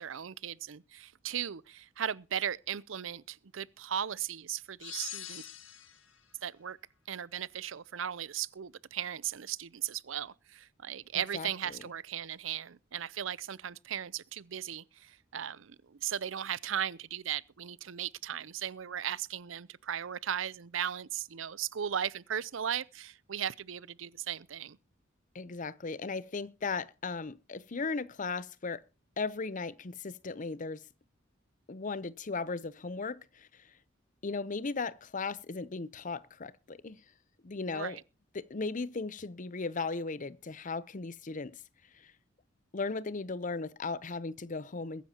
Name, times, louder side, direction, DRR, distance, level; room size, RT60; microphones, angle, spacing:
voice 1, 0.0-5.4 6.4-6.8 7.1-24.8 37.7-38.0, right 9 dB, 80° right, 0.6 m, -37 dB
sound 1, 4.8-6.2, left 12 dB, 70° left, 2.0 m, -44 dB
voice 2, 11.3-11.8 25.3-28.8 29.2-30.8 31.7-33.5 34.2-37.0 37.4-38.0 38.3-41.6 42.0-42.1 42.7-45.0, left 4 dB, 40° left, 0.7 m, -37 dB
22.0 x 10.0 x 2.9 m
head